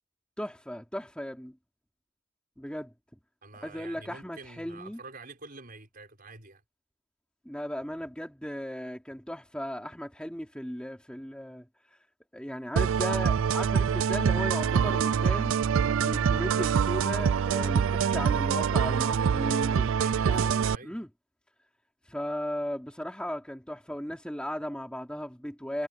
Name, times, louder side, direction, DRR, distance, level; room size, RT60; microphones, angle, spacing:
voice 1, 0.4-1.6 2.6-2.9 3.6-5.0 7.4-11.7 12.3-15.5 16.0-20.5 20.8-21.1 22.1-25.9, equal, 5° left, 2.9 m, -36 dB
voice 2, 3.4-6.6 20.0-21.0, right 3 dB, 40° right, 5.9 m, -47 dB
sound 1, 12.8-20.8, right 7 dB, 65° right, 0.4 m, -25 dB
head